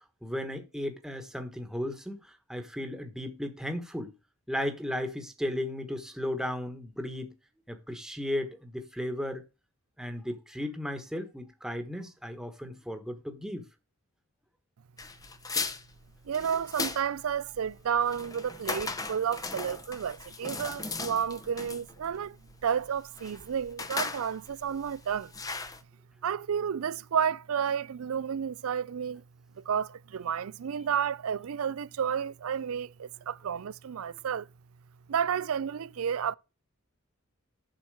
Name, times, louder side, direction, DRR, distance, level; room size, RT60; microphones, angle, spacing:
voice 1, 0.2-4.1 4.5-7.3 7.7-9.4 10.0-13.7, left 1 dB, 5° right, 1.3 m, -35 dB
sound 1, 15.0-25.8, left 4 dB, 15° left, 0.7 m, -37 dB
voice 2, 16.3-22.4 22.6-25.3 26.2-29.2 29.6-34.5 35.1-36.3, right 7 dB, 80° right, 0.4 m, -31 dB
7.5 x 6.2 x 4.8 m
head